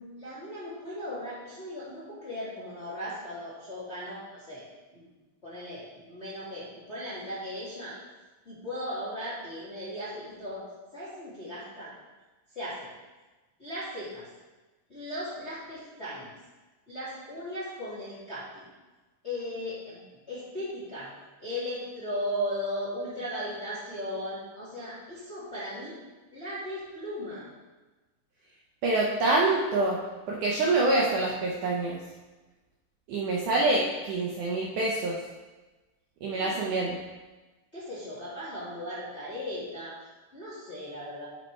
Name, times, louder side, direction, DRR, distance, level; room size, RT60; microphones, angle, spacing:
voice 1, 0.2-4.6 4.9-5.1 5.4-7.9 8.4-10.6 10.9-11.9 12.5-12.9 13.6-14.3 14.9-16.3 16.9-18.7 19.2-21.1 21.4-26.0 26.3-27.5 36.3-36.6 37.7-39.9 40.3-41.2, equal, 30° left, -10 dB, 1.3 m, -37 dB
voice 2, 28.8-30.0 30.3-32.0 33.1-35.2 36.2-37.0, right 2 dB, 75° right, -3 dB, 1.9 m, -26 dB
9.1 x 4.3 x 4.5 m, 1.2 s
omnidirectional pair, 4.3 m